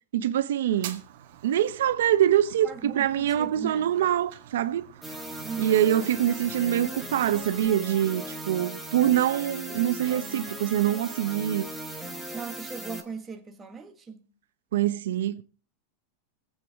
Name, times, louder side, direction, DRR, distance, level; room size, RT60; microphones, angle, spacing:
voice 1, 0.1-1.0 1.4-4.8 5.6-11.7 14.7-15.4, right 11 dB, 85° right, 0.8 m, -24 dB
Fire, 0.7-7.7, right 11 dB, 65° right, 1.6 m, -47 dB
voice 2, 2.6-3.9 5.4-5.9 12.3-14.3, right 5 dB, 15° right, 1.4 m, -38 dB
sound 1, 5.0-13.0, right 1 dB, 5° left, 1.5 m, -38 dB
23.0 x 8.4 x 3.5 m
supercardioid pair, 150°, 0 cm